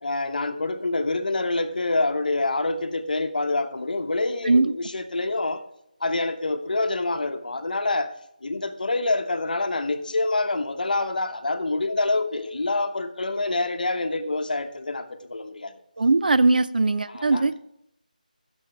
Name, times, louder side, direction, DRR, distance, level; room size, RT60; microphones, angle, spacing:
voice 1, 0.0-5.6 6.0-8.1 8.4-15.7 17.1-17.4, left 2 dB, 70° left, 8 dB, 1.0 m, -26 dB
voice 2, 16.0-17.5, right 3 dB, 70° right, 15 dB, 0.4 m, -20 dB
13.0 x 6.3 x 3.3 m, 0.75 s
figure-of-eight pair, 165°, 5 cm